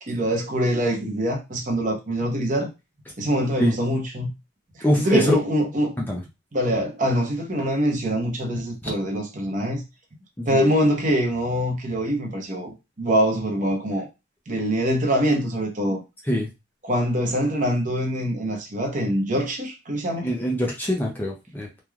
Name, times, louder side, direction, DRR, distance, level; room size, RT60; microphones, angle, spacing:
voice 1, 0.1-2.7 3.2-4.3 5.0-5.9 6.5-9.8 10.5-14.1 14.5-16.0 16.8-20.3, equal, 40° right, 0.8 m, -24 dB
voice 2, 4.8-5.3 6.1-6.2 8.8-8.9 10.4-10.6 16.3-16.5 20.2-21.7, equal, 10° left, 0.5 m, -23 dB
3.1 x 2.2 x 2.4 m
head